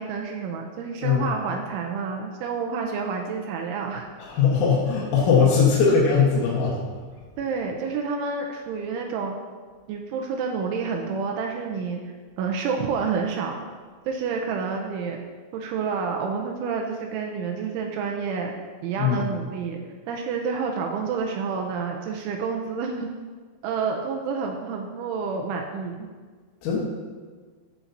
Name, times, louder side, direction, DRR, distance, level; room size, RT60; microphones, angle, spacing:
voice 1, 0.0-4.1 7.4-9.4 9.9-12.0 12.4-13.6 14.1-15.2 15.5-18.5 18.8-23.1 23.6-26.1, right 5 dB, 80° right, 2 dB, 3.0 m, -29 dB
voice 2, 4.2-6.8 19.0-19.3 26.6-26.8, left 6 dB, 85° left, -5 dB, 4.2 m, -20 dB
14.5 x 7.1 x 2.8 m, 1.5 s
omnidirectional pair, 5.8 m